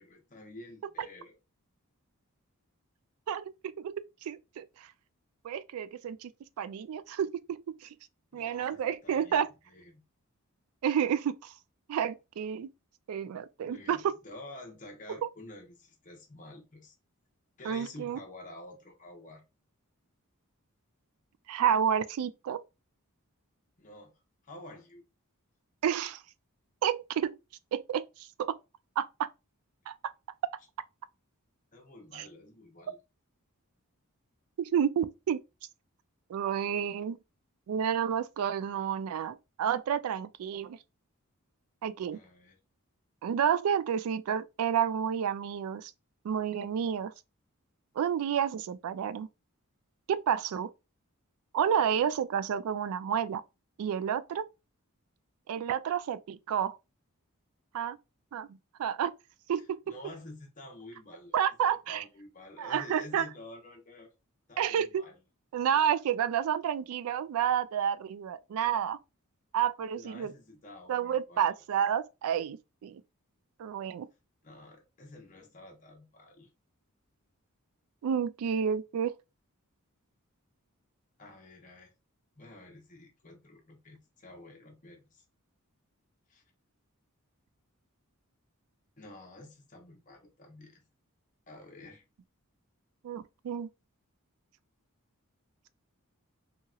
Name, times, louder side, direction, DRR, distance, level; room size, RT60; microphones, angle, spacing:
voice 1, 0.0-1.4 8.3-10.0 13.6-16.9 17.6-19.4 23.8-24.1 24.4-25.0 31.7-33.0 42.1-42.6 59.9-61.3 61.7-64.1 64.5-65.2 69.9-71.5 74.4-76.5 81.2-81.9 82.3-85.2 86.3-86.4 89.0-90.8 91.5-92.0, left 2 dB, 35° left, 0.8 m, -50 dB
voice 2, 3.3-4.6 5.4-6.3 6.6-7.9 8.3-9.5 10.8-11.5 11.9-12.7 13.1-14.1 17.6-18.2 21.5-22.6 25.8-26.2 26.8-27.4 27.7-28.5 29.0-29.3 29.9-30.0 32.1-32.3 34.6-35.4 36.3-37.2 37.7-40.8 41.8-42.2 43.2-45.9 46.2-47.1 48.0-49.3 50.1-50.7 51.5-53.4 53.8-54.4 55.5-56.8 57.7-58.0 58.3-59.1 59.5-59.8 61.3-62.0 62.6-63.3 64.6-65.0 65.5-69.0 69.5-70.3 70.9-73.0 73.6-74.1 78.0-79.2 93.0-93.7, right 8 dB, 75° right, 0.3 m, -30 dB
2.8 x 2.8 x 2.3 m
head